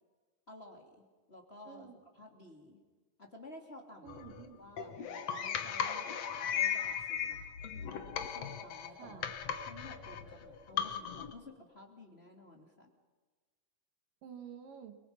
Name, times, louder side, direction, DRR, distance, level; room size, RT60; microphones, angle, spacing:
voice 1, 0.5-2.8 3.2-4.2 4.6-7.4 8.2-9.3 9.6-12.9, left 2 dB, 20° left, 2 dB, 2.7 m, -53 dB
voice 2, 4.0-4.6 8.9-9.3 14.2-15.0, right 8 dB, 75° right, 7 dB, 3.5 m, -50 dB
sound 1, 4.1-11.3, left 8 dB, 55° left, 2.3 m, -37 dB
30.0 x 23.5 x 5.9 m, 1.4 s
omnidirectional pair, 3.9 m